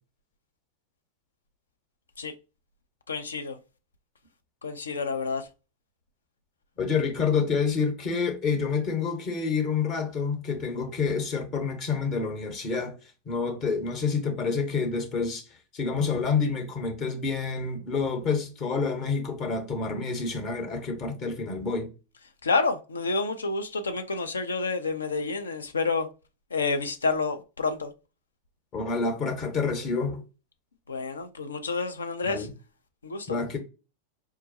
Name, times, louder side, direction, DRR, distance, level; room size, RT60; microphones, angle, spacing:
voice 1, 3.1-3.6 4.6-5.5 22.4-26.1 26.5-27.9 30.9-32.5 33.0-33.4, left 4 dB, 70° left, 0.5 m, -29 dB
voice 2, 6.8-12.9 13.3-15.4 15.7-21.9 28.7-30.2 32.2-32.5 33.3-33.6, left 5 dB, 35° left, 1.0 m, -28 dB
4.7 x 2.2 x 2.6 m
figure-of-eight pair, 90°, 0 cm